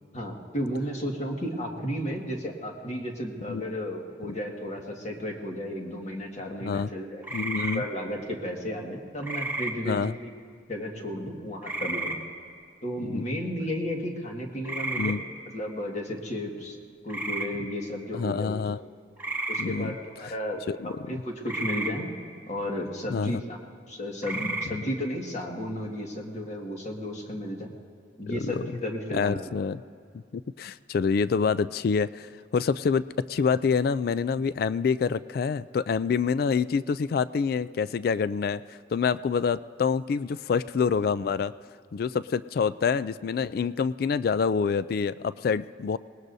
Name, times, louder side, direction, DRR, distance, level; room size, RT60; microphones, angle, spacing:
voice 1, 0.1-7.2 7.7-10.3 10.7-12.2 12.8-15.2 15.5-16.8 17.0-18.6 19.5-22.1 22.5-23.6 23.9-27.7 28.2-29.4, equal, 40° left, 0 dB, 1.8 m, -33 dB
sound 1, 7.2-7.8 9.2-9.7 11.6-12.2 14.6-15.1 17.1-17.5 19.2-19.6 21.5-21.9 24.2-24.7, right 2 dB, 10° right, 1.4 m, -31 dB
voice 2, 7.3-7.8 9.8-10.1 13.0-13.2 15.0-15.2 18.1-18.8 19.6-19.9 20.7-21.1 23.1-23.4 28.3-28.7 29.1-29.8 30.3-41.5 41.9-46.0, left 5 dB, 55° left, 15 dB, 0.3 m, -27 dB
25.0 x 19.5 x 2.7 m, 2.3 s
head